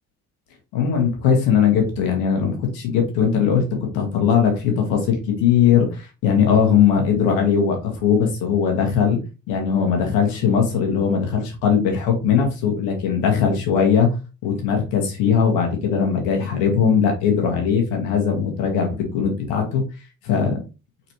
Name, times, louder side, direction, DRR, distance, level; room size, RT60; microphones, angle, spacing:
voice 1, 0.7-3.6 3.9-9.2 9.5-14.2 14.4-19.8 20.2-20.6, left 7 dB, 80° left, 2 dB, 1.5 m, -19 dB
4.2 x 4.1 x 3.0 m, 0.30 s
hypercardioid pair, 40°, 42 cm